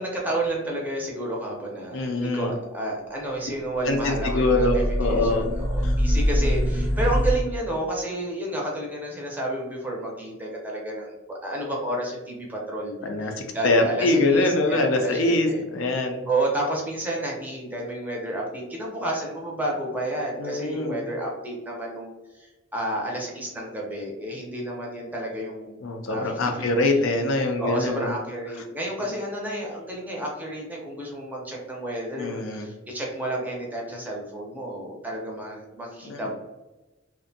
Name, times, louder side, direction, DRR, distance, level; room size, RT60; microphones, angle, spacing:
voice 1, 0.0-4.7 5.0-15.6 16.3-25.7 26.1-26.4 26.8-27.0 27.6-36.3, right 1 dB, 10° right, -2 dB, 0.5 m, -31 dB
voice 2, 1.9-2.5 3.8-5.4 5.8-6.0 13.0-16.2 20.4-21.0 25.8-28.1 32.2-32.7 36.0-36.3, left 2 dB, 70° left, 4 dB, 0.4 m, -24 dB
sound 1, 3.7-7.3, equal, 20° left, 0.8 m, -24 dB
2.5 x 2.1 x 2.6 m, 1.1 s
head